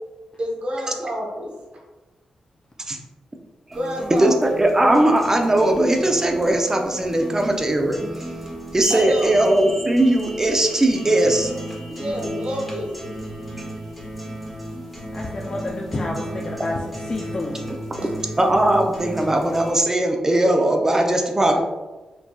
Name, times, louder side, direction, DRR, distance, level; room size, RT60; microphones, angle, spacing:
voice 1, 0.4-1.5 3.7-4.3 8.9-9.4 11.9-12.9 18.0-18.1 20.9-21.0 21.4-21.6, equal, 60° right, -2 dB, 0.9 m, -29 dB
sound 1, 3.7-19.7, right 1 dB, ahead, 1.2 m, -34 dB
voice 2, 4.1-8.3 8.7-11.5 18.4-21.6, right 1 dB, 25° right, 2 dB, 0.6 m, -19 dB
sound 2, 8.8-13.8, left 1 dB, 60° left, 1.3 m, -40 dB
voice 3, 15.1-16.8 17.1-17.8, left 2 dB, 35° left, -1 dB, 0.4 m, -30 dB
4.5 x 2.7 x 2.3 m, 1.1 s
cardioid pair, 60°, 2 cm